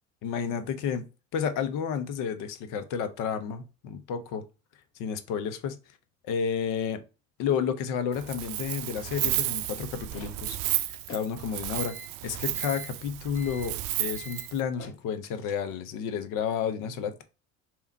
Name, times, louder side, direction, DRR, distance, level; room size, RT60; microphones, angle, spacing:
voice 1, 0.2-1.0 1.3-4.4 5.0-5.8 6.3-7.0 7.4-10.6 11.1-12.0 12.2-17.2, left 7 dB, 60° left, 0.8 m, -31 dB
Wind, 8.1-14.6, right 15 dB, 60° right, 0.5 m, -32 dB
sound 1, 9.7-15.9, left 3 dB, 35° left, 1.5 m, -49 dB
3.4 x 3.0 x 4.4 m
hypercardioid pair, 75°, 37 cm